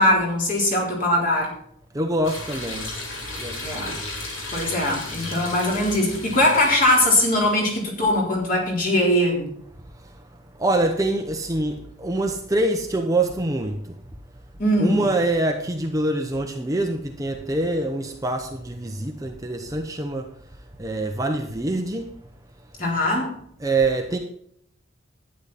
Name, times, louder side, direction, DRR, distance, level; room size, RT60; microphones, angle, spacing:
voice 1, 0.0-1.5 3.6-3.9 4.5-9.5 14.6-15.0 22.8-23.4, left 1 dB, 40° left, 3.8 m, -21 dB
voice 2, 1.9-2.9 3.4-4.0 10.0-10.1 10.6-13.8 14.8-20.2 20.8-22.1 23.6-24.2, right 2 dB, 15° right, 0.8 m, -25 dB
sound 1, 2.2-7.8, left 2 dB, 65° left, 3.5 m, -35 dB
12.0 x 9.7 x 4.2 m
head